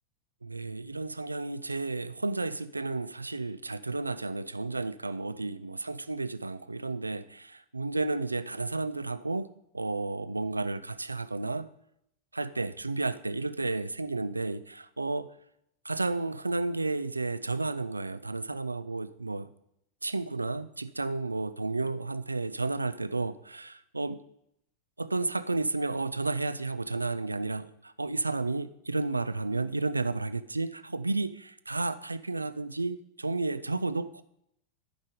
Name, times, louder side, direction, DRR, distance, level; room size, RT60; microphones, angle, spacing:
voice 1, 0.4-11.7 12.3-15.3 15.8-19.5 20.0-24.2 25.0-34.2, right 3 dB, 80° right, 0.4 m, -32 dB
14.5 x 5.0 x 3.8 m
figure-of-eight pair, 90°, 0 cm